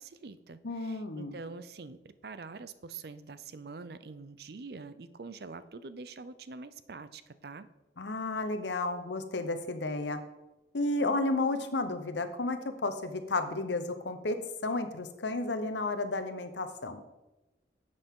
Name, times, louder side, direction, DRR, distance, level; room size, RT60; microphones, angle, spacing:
voice 1, 0.0-7.7, right 4 dB, 60° right, 13 dB, 0.5 m, -45 dB
voice 2, 0.6-1.4 8.0-10.2 10.7-17.0, left 2 dB, 80° left, 9 dB, 0.9 m, -32 dB
10.0 x 7.8 x 3.7 m, 1.0 s
head